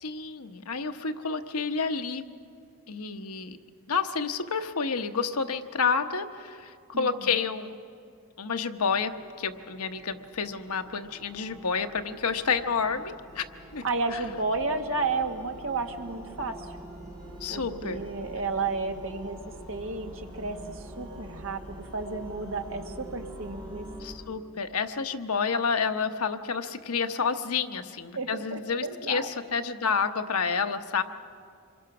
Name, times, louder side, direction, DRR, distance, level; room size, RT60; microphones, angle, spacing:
voice 1, 0.0-2.2 2.9-3.6 3.9-7.8 8.4-13.4 13.7-13.8 14.1-14.2 17.4-18.0 24.0-31.0, left 5 dB, 90° left, 8 dB, 1.0 m, -29 dB
voice 2, 6.9-7.3 13.8-16.7 17.5-23.9 28.1-29.2, right 3 dB, 65° right, 4 dB, 1.6 m, -32 dB
sound 1, 8.8-24.2, right 1 dB, 20° right, 4.3 m, -45 dB
26.0 x 22.5 x 6.0 m, 2.3 s
head